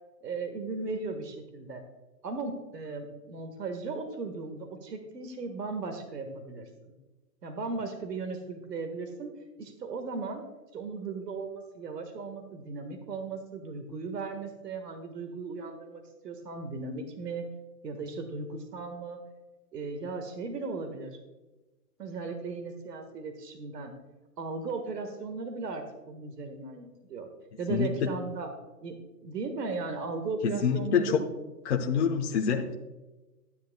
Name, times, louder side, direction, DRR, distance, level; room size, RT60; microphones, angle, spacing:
voice 1, 0.2-1.8 2.2-6.7 7.4-9.3 9.6-10.4 10.7-17.5 17.8-19.2 19.7-21.2 22.0-23.9 24.4-27.3 27.6-28.5 28.8-29.0 29.2-31.1, right 4 dB, 75° right, 6 dB, 1.6 m, -36 dB
voice 2, 27.7-28.1 30.4-31.2 31.6-32.8, left 7 dB, 45° left, 2 dB, 0.9 m, -26 dB
12.5 x 10.0 x 2.2 m, 1.1 s
hypercardioid pair, 150°, 49 cm